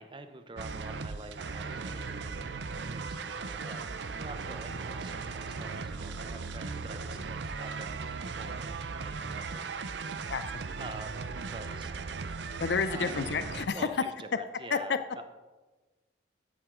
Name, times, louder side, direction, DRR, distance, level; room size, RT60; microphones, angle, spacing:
voice 1, 0.0-2.5 2.8-9.6 10.8-11.9 12.9-13.3 13.7-15.2, right 2 dB, 25° right, 9 dB, 0.7 m, -47 dB
sound 1, 0.6-13.7, right 4 dB, 70° right, 0.6 m, -37 dB
voice 2, 10.3-10.6 12.6-13.9 14.7-14.8, left 5 dB, 65° left, 10 dB, 0.5 m, -30 dB
13.0 x 7.8 x 3.7 m, 1.2 s
head